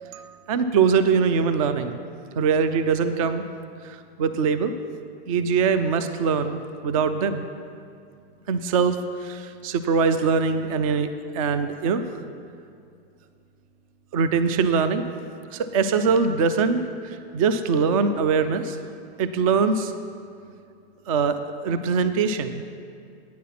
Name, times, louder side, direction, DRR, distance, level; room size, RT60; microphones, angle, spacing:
voice 1, 0.0-2.0 2.4-3.4 3.8-4.7 5.3-6.6 6.8-7.4 8.5-12.0 14.1-15.0 15.5-18.8 19.2-19.9 21.1-21.4 21.6-22.6, right 5 dB, 35° right, 10 dB, 0.4 m, -22 dB
9.5 x 8.0 x 5.9 m, 2.4 s
hypercardioid pair, 155°, 31 cm